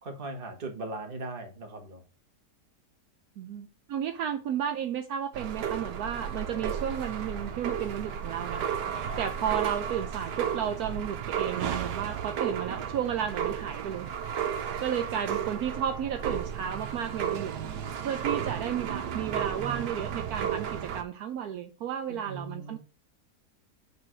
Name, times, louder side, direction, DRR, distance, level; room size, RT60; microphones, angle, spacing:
voice 1, 0.0-2.0 9.1-9.2 22.1-22.8, right 2 dB, 35° right, 1.4 m, -39 dB
voice 2, 3.4-8.7 9.2-14.1 14.8-17.5 18.0-22.8, right 9 dB, 70° right, 1.1 m, -33 dB
sound 1, 5.3-21.0, right 8 dB, 85° right, 1.5 m, -33 dB
6.6 x 4.1 x 6.3 m
omnidirectional pair, 1.7 m